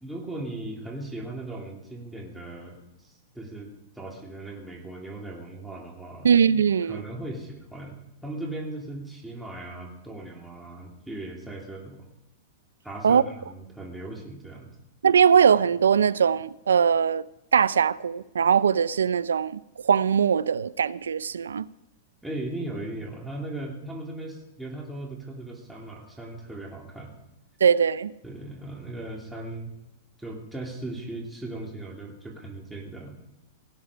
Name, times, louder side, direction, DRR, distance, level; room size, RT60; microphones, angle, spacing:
voice 1, 0.0-3.7 3.9-6.3 6.8-8.0 8.2-12.1 12.8-14.7 22.2-27.2 28.2-29.7 30.2-33.3, right 2 dB, 5° right, 2.9 m, -38 dB
voice 2, 6.2-7.0 13.0-13.2 15.0-17.2 17.5-21.7 27.6-28.1, right 7 dB, 90° right, 0.4 m, -21 dB
17.5 x 9.5 x 5.0 m
hypercardioid pair, 120°, 0 cm